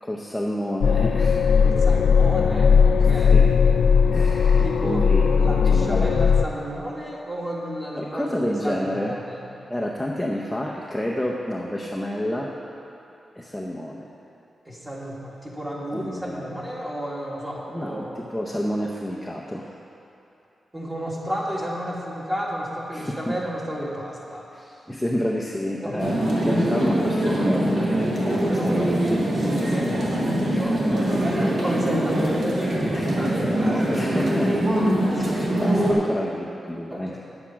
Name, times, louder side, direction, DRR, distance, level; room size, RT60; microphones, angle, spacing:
voice 1, 0.0-1.5 3.2-3.4 4.1-6.1 8.0-9.1 9.7-12.5 13.3-14.1 15.9-16.5 17.7-19.7 22.9-23.4 24.5-24.6 24.9-29.1 30.5-31.0 32.9-33.3 33.7-34.5 35.2-37.2, equal, 5° left, -3 dB, 0.7 m, -29 dB
sound 1, 0.8-6.4, left 6 dB, 85° left, 0.4 m, -18 dB
voice 2, 1.6-3.5 4.6-5.1 5.4-9.4 14.7-18.2 20.7-24.8 25.8-26.1 29.5-30.8 31.2-32.5 32.8-34.3 35.1-35.4 36.9-37.2, equal, 15° right, -4 dB, 1.9 m, -32 dB
sound 2, 26.0-35.9, right 1 dB, 60° right, 2.0 m, -23 dB
9.7 x 8.2 x 5.8 m, 2.8 s
wide cardioid pair, 130°, 0 cm